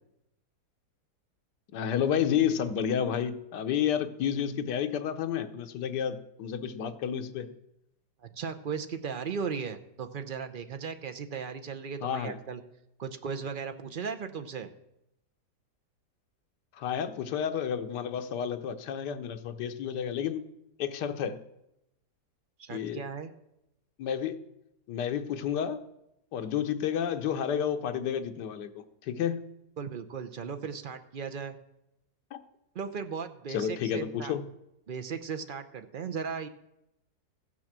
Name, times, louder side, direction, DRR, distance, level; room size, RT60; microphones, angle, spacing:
voice 1, 1.7-7.5 12.0-12.4 16.7-20.5 20.8-21.4 22.7-23.0 24.0-24.4 24.9-25.8 26.3-29.4 32.3-32.4 33.5-34.4, left 8 dB, 90° left, 9 dB, 1.4 m, -30 dB
voice 2, 8.2-12.6 13.0-14.7 22.6-23.3 29.8-31.6 32.7-34.4 34.9-36.5, right 6 dB, 55° right, 8 dB, 0.5 m, -36 dB
15.0 x 6.2 x 7.3 m, 0.86 s
omnidirectional pair, 1.8 m